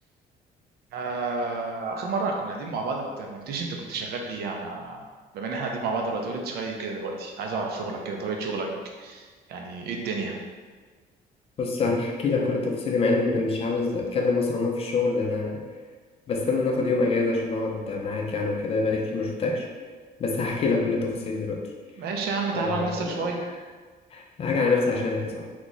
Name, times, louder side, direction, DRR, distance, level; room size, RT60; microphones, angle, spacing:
voice 1, 0.9-5.0 5.3-8.7 9.0-10.3 22.0-23.4, right 3 dB, 65° right, 2 dB, 0.5 m, -30 dB
voice 2, 11.6-15.6 16.3-19.7 20.2-21.7 22.5-23.3 24.1-25.5, left 3 dB, 35° left, 0 dB, 0.4 m, -26 dB
3.0 x 2.4 x 3.9 m, 1.4 s
cardioid pair, 170°, 17 cm